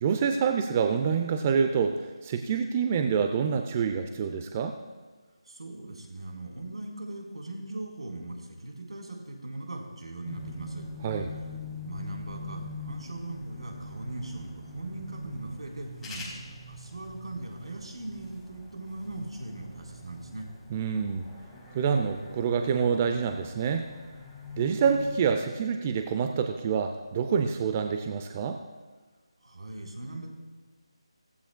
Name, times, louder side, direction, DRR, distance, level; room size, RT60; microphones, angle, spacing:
voice 1, 0.0-4.7 11.0-11.3 20.7-21.3 21.7-23.9 24.6-28.6, right 6 dB, 20° right, 6 dB, 0.4 m, -27 dB
voice 2, 5.5-10.8 11.8-20.5 29.4-30.3, right 2 dB, 80° right, 0 dB, 3.8 m, -39 dB
sound 1, 10.2-25.4, left 1 dB, 5° left, 1.2 m, -43 dB
17.0 x 15.0 x 2.2 m, 1.4 s
figure-of-eight pair, 170°, 3 cm